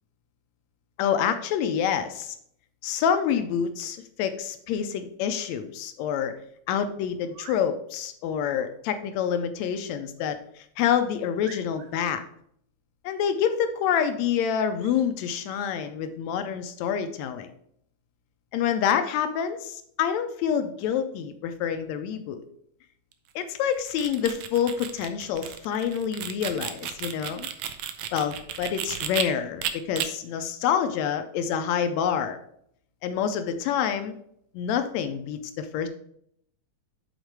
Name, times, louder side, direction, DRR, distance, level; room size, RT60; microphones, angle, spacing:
voice 1, 1.0-2.3 2.8-6.3 6.7-12.2 13.0-17.5 18.5-22.4 23.3-27.5 28.1-32.4 33.0-34.2 34.5-35.9, left 8 dB, 80° left, 8 dB, 1.6 m, -27 dB
sound 1, 7.2-7.7 10.2-10.4 10.9-11.0 11.4-12.1 14.8-15.1 15.5-15.7, right 5 dB, 65° right, 2.1 m, -47 dB
sound 2, 23.7-29.2 29.6-30.1, right 10 dB, 90° right, 1.4 m, -33 dB
8.1 x 4.0 x 4.7 m, 0.69 s
omnidirectional pair, 3.6 m